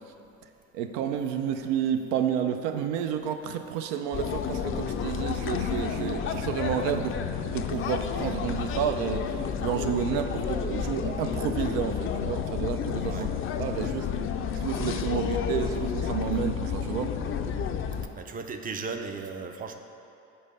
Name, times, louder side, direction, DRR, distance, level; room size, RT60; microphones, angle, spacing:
voice 1, 0.7-7.2 7.5-13.3 13.6-14.1 14.5-17.1, right 8 dB, 80° right, 7 dB, 0.5 m, -30 dB
sound 1, 4.1-18.1, left 7 dB, 40° left, 0.4 m, -31 dB
voice 2, 18.1-19.8, right 4 dB, 25° right, 6 dB, 0.4 m, -36 dB
5.4 x 4.0 x 5.4 m, 2.7 s
supercardioid pair, 90°, 33 cm